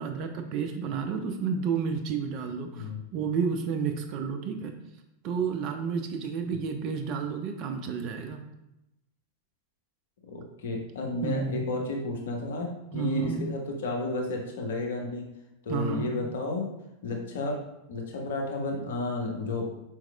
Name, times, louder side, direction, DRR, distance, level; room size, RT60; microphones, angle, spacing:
voice 1, 0.0-4.7 5.2-8.4 11.0-11.7 12.9-13.5 15.7-16.1, right 6 dB, 40° right, 5 dB, 0.4 m, -31 dB
voice 2, 10.3-15.2 15.6-16.7 17.0-17.6 17.9-19.7, left 2 dB, 60° left, 0 dB, 0.8 m, -32 dB
4.7 x 3.0 x 2.2 m, 0.87 s
figure-of-eight pair, 90°, 0 cm